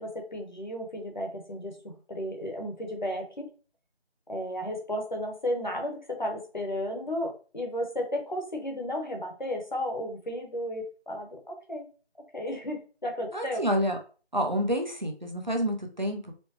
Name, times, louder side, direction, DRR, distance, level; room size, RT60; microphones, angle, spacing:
voice 1, 0.0-3.5 4.3-11.9 12.3-13.6, left 1 dB, 45° left, 1 dB, 0.9 m, -33 dB
voice 2, 13.3-14.0 14.3-16.3, equal, 45° right, 3 dB, 0.6 m, -28 dB
4.3 x 2.1 x 2.9 m, 0.37 s
figure-of-eight pair, 170°, 33 cm